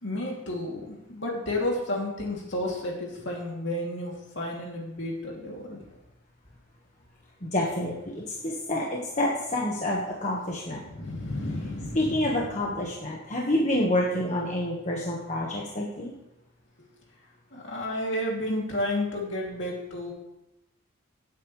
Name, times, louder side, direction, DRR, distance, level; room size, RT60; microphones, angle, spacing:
voice 1, 0.0-5.8 10.8-12.5 17.5-20.1, left 1 dB, 60° left, -1 dB, 2.8 m, -31 dB
voice 2, 7.4-10.8 11.9-16.1, left 1 dB, 35° left, -3 dB, 1.5 m, -28 dB
17.0 x 8.7 x 3.3 m, 0.90 s
head